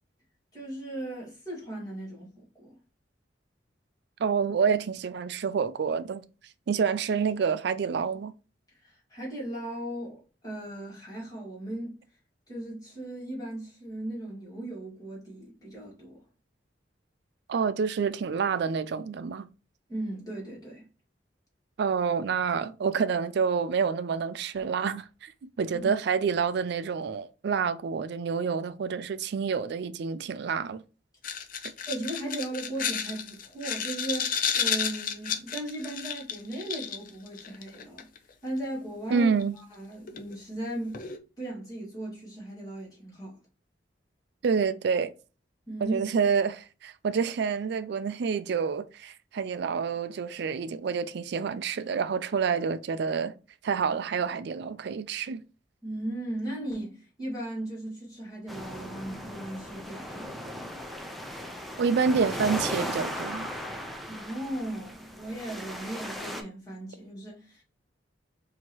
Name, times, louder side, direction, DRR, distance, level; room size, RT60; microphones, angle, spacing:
voice 1, 0.5-2.8 8.8-11.9 12.5-16.2 19.9-20.8 25.8-25.9 31.9-38.1 38.4-39.3 39.7-41.1 41.4-43.4 45.7-46.1 55.8-60.7 64.1-67.6, right 1 dB, 20° left, 2.1 m, -37 dB
voice 2, 4.2-6.2 6.7-8.3 17.5-19.5 21.8-25.3 25.6-30.8 39.1-39.6 44.4-45.1 45.8-53.3 53.6-55.4 61.8-63.5, right 6 dB, 65° right, 0.4 m, -28 dB
sound 1, 31.2-38.2 39.4-39.5 40.1-40.4 40.9-41.2, left 7 dB, 50° left, 0.5 m, -32 dB
sound 2, 58.5-66.4, equal, ahead, 0.5 m, -37 dB
4.4 x 2.8 x 2.9 m
head